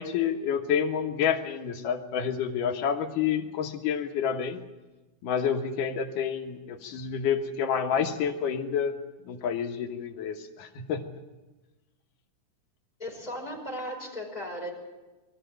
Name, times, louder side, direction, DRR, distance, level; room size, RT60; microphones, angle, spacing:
voice 1, 0.0-4.6 5.2-9.0 9.3-11.0, left 7 dB, 85° left, 4 dB, 2.9 m, -29 dB
voice 2, 13.0-14.7, equal, 10° left, -2 dB, 4.8 m, -36 dB
22.5 x 13.5 x 9.0 m, 1.1 s
omnidirectional pair, 3.7 m